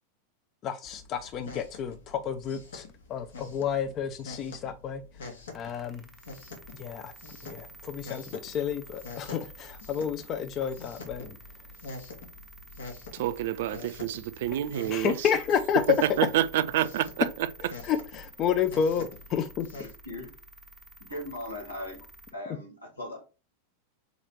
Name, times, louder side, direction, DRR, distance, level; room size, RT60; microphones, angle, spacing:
voice 1, 0.6-2.8 3.1-5.0 5.5-6.1 6.7-7.1 7.4-11.4 14.9-15.8 16.1-16.2 17.8-19.7, left 7 dB, 35° left, 0.4 m, -30 dB
sound 1, 0.8-19.9, left 3 dB, 65° left, 1.0 m, -46 dB
sound 2, 5.5-22.3, right 1 dB, 5° left, 0.8 m, -51 dB
voice 2, 13.1-15.2 16.2-17.2, right 13 dB, 55° right, 0.4 m, -28 dB
voice 3, 19.8-20.3 21.0-22.0 22.3-23.2, left 1 dB, 80° left, 1.9 m, -39 dB
4.0 x 3.0 x 4.4 m
figure-of-eight pair, 90°, 0 cm